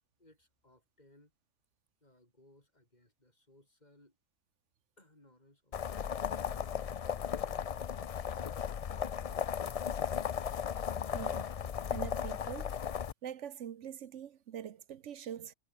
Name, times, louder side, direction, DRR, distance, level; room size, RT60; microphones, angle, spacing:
voice 1, 0.0-1.3 2.0-4.2 5.0-7.9, left 1 dB, 35° left, 5.0 m, -65 dB
sound 1, 5.7-13.1, left 8 dB, 50° left, 0.4 m, -36 dB
voice 2, 11.1-11.5 11.9-12.7 13.2-15.5, right 9 dB, 75° right, 1.1 m, -43 dB
omnidirectional pair, 1.3 m